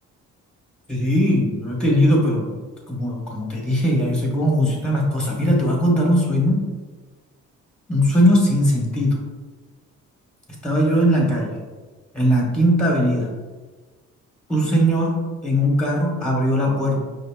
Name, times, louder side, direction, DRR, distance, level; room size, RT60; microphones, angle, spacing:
voice 1, 0.9-2.5 2.9-6.6 7.9-9.2 10.6-11.6 12.1-13.3 14.5-15.1 15.4-17.0, equal, 5° left, -2 dB, 1.1 m, -19 dB
5.1 x 2.0 x 3.5 m, 1.3 s
cardioid pair, 90°, 30 cm